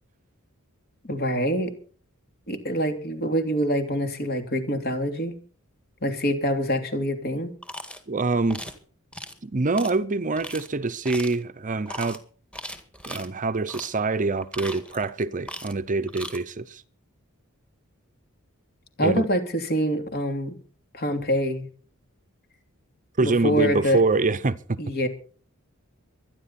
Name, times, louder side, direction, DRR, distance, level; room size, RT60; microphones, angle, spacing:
voice 1, 1.0-1.7 2.5-5.4 6.0-7.5 19.0-20.5 20.9-21.7 23.2-24.0 24.8-25.1, equal, 45° left, 3.0 m, -25 dB
sound 1, 7.6-8.0 8.5-8.8 9.1-9.4 9.8-9.9 10.4-10.7 11.0-11.4 11.9-12.2 12.5-13.3 13.7-13.9 14.4-15.1 15.4-15.8 16.1-16.4, equal, 5° left, 1.9 m, -38 dB
voice 2, 8.1-8.6 9.4-12.2 13.1-16.8 19.0-19.3 23.2-24.6, right 3 dB, 35° right, 0.7 m, -25 dB
24.0 x 10.5 x 4.2 m
head